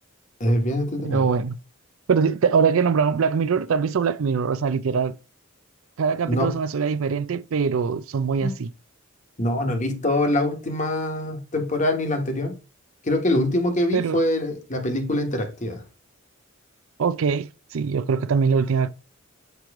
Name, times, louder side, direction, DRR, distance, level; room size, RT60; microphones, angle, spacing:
voice 1, 0.4-1.3 6.3-6.6 8.4-8.6 9.4-12.6 13.0-15.8, left 1 dB, 35° left, 1.2 m, -24 dB
voice 2, 1.1-1.6 2.1-5.2 6.0-8.7 13.9-14.2 17.0-18.9, right 5 dB, 80° right, 0.4 m, -22 dB
6.8 x 3.0 x 4.7 m
head